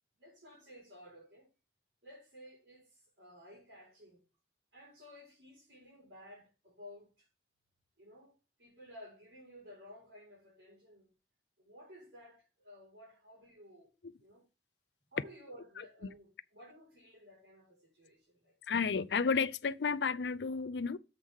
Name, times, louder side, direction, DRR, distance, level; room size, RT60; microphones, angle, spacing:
voice 1, 0.2-1.5 2.0-4.3 4.7-7.3 8.0-11.1 11.6-13.9 14.2-14.5 15.1-18.6, left 1 dB, 80° right, 4.8 m, -55 dB
voice 2, 18.7-21.0, left 5 dB, 80° left, 0.5 m, -32 dB
7.5 x 3.6 x 6.3 m
head